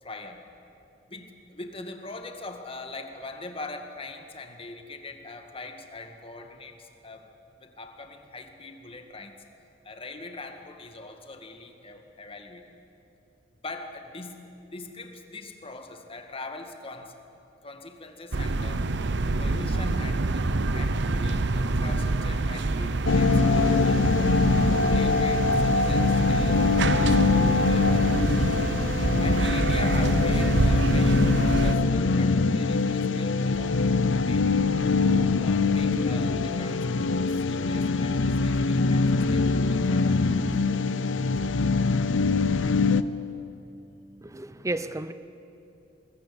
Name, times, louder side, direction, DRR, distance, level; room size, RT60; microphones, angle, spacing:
voice 1, 0.0-0.4 1.1-7.3 7.6-9.3 9.8-12.6 13.6-17.1 17.6-18.8 19.4-24.3 24.7-28.4 29.2-33.8 34.1-34.5 34.8-40.4, left 2 dB, 30° left, 5 dB, 1.9 m, -42 dB
sound 1, 18.3-31.8, right 2 dB, 65° right, 0.8 m, -26 dB
sound 2, 23.1-43.0, left 3 dB, 90° left, 0.7 m, -23 dB
voice 2, 44.2-45.1, right 2 dB, 15° right, 12 dB, 0.7 m, -32 dB
22.0 x 18.0 x 8.8 m, 2.9 s
head